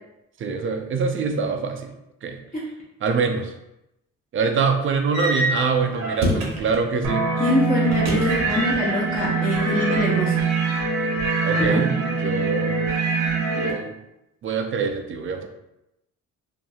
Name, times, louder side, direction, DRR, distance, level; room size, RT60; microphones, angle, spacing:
voice 1, 0.4-1.9 2.2-2.4 3.0-3.5 4.3-7.3 11.4-12.9 13.5-13.9 14.4-15.5, right 5 dB, 45° right, 5 dB, 0.4 m, -24 dB
sound 1, 5.1-6.9 7.9-8.9 9.2-10.0, equal, 60° right, 0.8 m, -27 dB
sound 2, 7.0-13.7, right 4 dB, 85° right, 0.9 m, -23 dB
voice 2, 7.4-10.4 11.5-11.8, left 1 dB, 30° left, -7 dB, 0.7 m, -23 dB
2.8 x 2.5 x 2.3 m, 0.87 s
cardioid pair, 90°, 30 cm